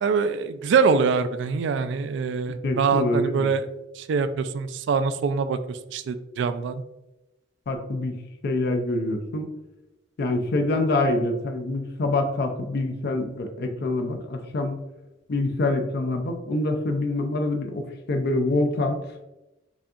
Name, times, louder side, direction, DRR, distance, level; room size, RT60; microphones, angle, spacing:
voice 1, 0.0-3.6 4.0-6.8, right 5 dB, 65° right, 11 dB, 0.3 m, -24 dB
voice 2, 2.6-3.5 7.7-8.2 8.4-9.5 10.2-14.7 15.3-19.0, left 2 dB, 55° left, 4 dB, 0.4 m, -25 dB
4.9 x 2.7 x 2.4 m, 0.97 s
head